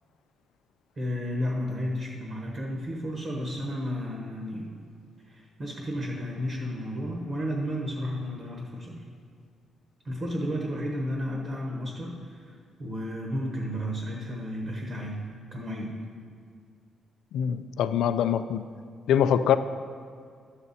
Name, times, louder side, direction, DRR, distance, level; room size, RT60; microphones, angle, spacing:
voice 1, 1.0-4.7 5.3-9.0 10.0-16.0, equal, 35° right, 0 dB, 1.1 m, -33 dB
voice 2, 17.3-18.6 19.1-19.6, left 9 dB, 85° left, 12 dB, 0.4 m, -23 dB
12.0 x 7.9 x 4.2 m, 2.2 s
cardioid pair, 160°, 0 cm